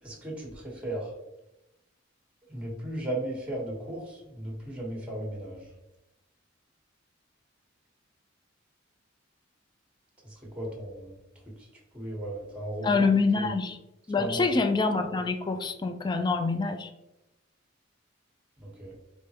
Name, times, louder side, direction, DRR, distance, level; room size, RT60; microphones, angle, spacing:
voice 1, 0.0-1.1 2.5-5.7 10.2-11.2 11.9-13.0 13.3-13.5 14.2-14.5 18.6-18.9, right 1 dB, 5° right, -2 dB, 1.1 m, -36 dB
voice 2, 12.8-13.8 14.1-16.9, left 4 dB, 20° left, 7 dB, 0.3 m, -26 dB
4.0 x 3.5 x 2.9 m, 0.92 s
head